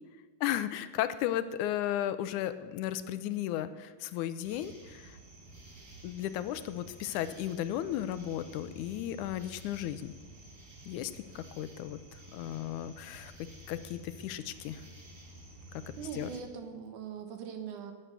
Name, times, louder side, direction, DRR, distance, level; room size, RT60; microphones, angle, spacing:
voice 1, 0.4-5.2 6.0-10.1 10.9-12.0 12.3-13.3 13.7-14.8 16.1-16.3, left 12 dB, 80° left, 13 dB, 2.0 m, -35 dB
sound 1, 4.4-16.4, right 1 dB, 55° right, 5.9 m, -52 dB
voice 2, 16.0-17.9, right 6 dB, 75° right, 6 dB, 2.8 m, -41 dB
18.5 x 7.5 x 6.8 m, 1.4 s
omnidirectional pair, 3.6 m